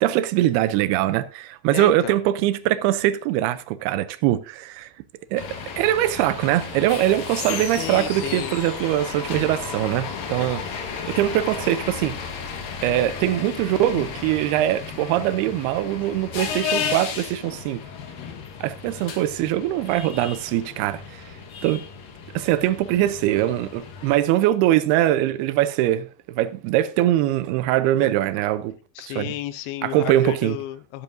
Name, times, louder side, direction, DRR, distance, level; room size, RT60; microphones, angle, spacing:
voice 1, 0.0-4.9 5.3-5.5 5.8-12.2 12.8-17.8 18.6-21.2 21.6-21.8 22.3-28.8 29.1-29.3 29.8-30.6, right 13 dB, 90° right, 2.6 m, -22 dB
voice 2, 1.7-2.2 7.7-8.5 29.0-31.0, left 14 dB, 85° left, 2.6 m, -32 dB
sound 1, 5.4-24.2, left 6 dB, 65° left, 3.1 m, -33 dB
12.0 x 12.0 x 2.6 m
omnidirectional pair, 4.5 m